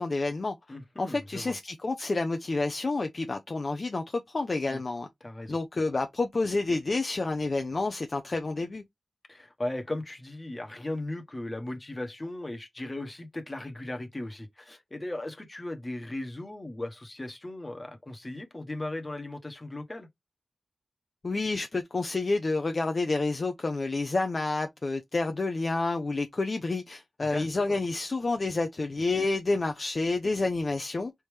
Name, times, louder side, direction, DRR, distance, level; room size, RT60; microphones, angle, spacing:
voice 1, 0.0-0.5 1.0-5.1 5.5-8.8 21.2-31.1, left 3 dB, 45° left, 0.5 m, -29 dB
voice 2, 0.7-1.5 4.7-4.8 5.2-5.6 9.3-20.1 27.2-27.8, left 1 dB, 25° left, 1.1 m, -37 dB
4.1 x 3.5 x 3.2 m
wide cardioid pair, 90°, 0 cm